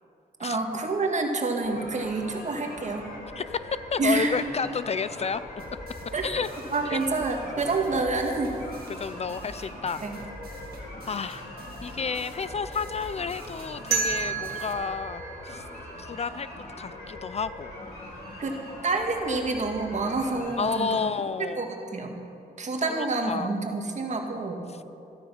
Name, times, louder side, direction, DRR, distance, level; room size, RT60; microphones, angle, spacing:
voice 1, 0.4-3.1 4.0-4.4 6.1-6.2 6.7-8.6 10.0-10.1 18.4-18.6 18.8-21.0 21.4-22.1 22.6-24.6, right 3 dB, 45° right, 3 dB, 1.8 m, -28 dB
sound 1, 1.6-21.0, left 1 dB, 75° left, 3.9 m, -42 dB
voice 2, 3.9-5.4 6.2-6.5 6.9-7.0 9.0-10.0 11.1-11.5 11.8-15.7 16.0-16.5 16.8-17.7 20.6-21.7 22.9-23.5 24.7-24.8, left 5 dB, 40° left, 15 dB, 0.4 m, -31 dB
sound 2, 5.6-14.7, right 2 dB, 70° right, 1.9 m, -46 dB
sound 3, 13.9-16.8, right 7 dB, 90° right, 1.8 m, -32 dB
13.0 x 13.0 x 5.7 m, 2.7 s
cardioid pair, 100°, 16 cm